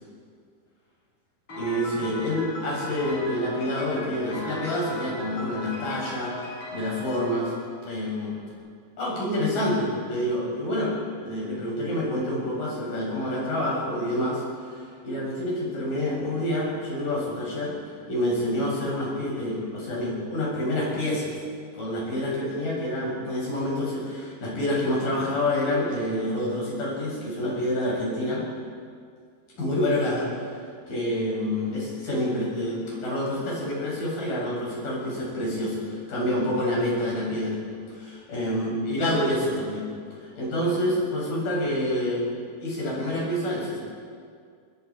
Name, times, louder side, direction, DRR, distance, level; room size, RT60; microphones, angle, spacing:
Piano, 1.5-8.3, left 1 dB, 35° left, 6.8 m, -37 dB
voice 1, 1.6-7.5 7.8-8.4 9.0-10.9 11.2-14.4 14.7-17.7 18.1-21.3 21.7-28.4 29.6-30.5 30.9-37.6 37.9-39.9 40.4-42.3 42.6-43.8, left 1 dB, 70° left, -5 dB, 9.5 m, -27 dB
24.5 x 24.0 x 5.0 m, 2.1 s
omnidirectional pair, 4.1 m